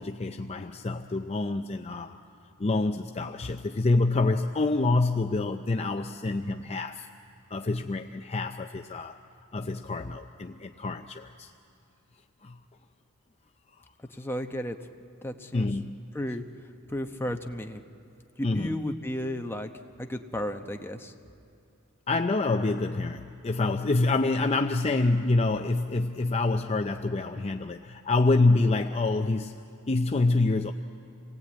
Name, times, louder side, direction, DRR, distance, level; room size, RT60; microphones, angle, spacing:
voice 1, 0.0-2.2 2.6-7.1 7.5-9.2 9.5-11.5 12.4-12.6 15.5-16.0 18.4-18.8 22.1-30.7, left 2 dB, 30° left, 6 dB, 0.5 m, -27 dB
voice 2, 14.1-14.8 15.2-15.7 16.1-16.4 16.9-17.8 18.4-19.7 20.0-21.1, left 1 dB, 10° left, 4 dB, 0.9 m, -33 dB
28.0 x 19.0 x 8.6 m, 2.6 s
head